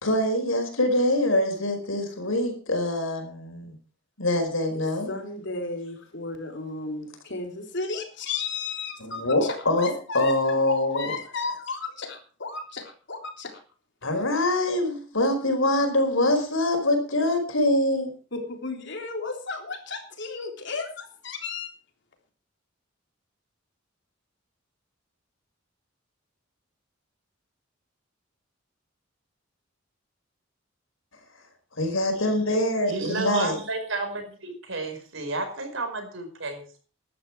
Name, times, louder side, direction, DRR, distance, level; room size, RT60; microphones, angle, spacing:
voice 1, 0.0-3.7 4.2-5.1 9.0-11.1 14.0-18.1 31.8-33.6, left 1 dB, 90° left, 5 dB, 4.8 m, -24 dB
voice 2, 5.1-13.5 18.3-21.7, left 4 dB, 60° left, 4 dB, 3.5 m, -34 dB
voice 3, 32.9-36.8, right 2 dB, 70° right, 6 dB, 5.2 m, -31 dB
15.5 x 12.0 x 4.7 m, 0.38 s
head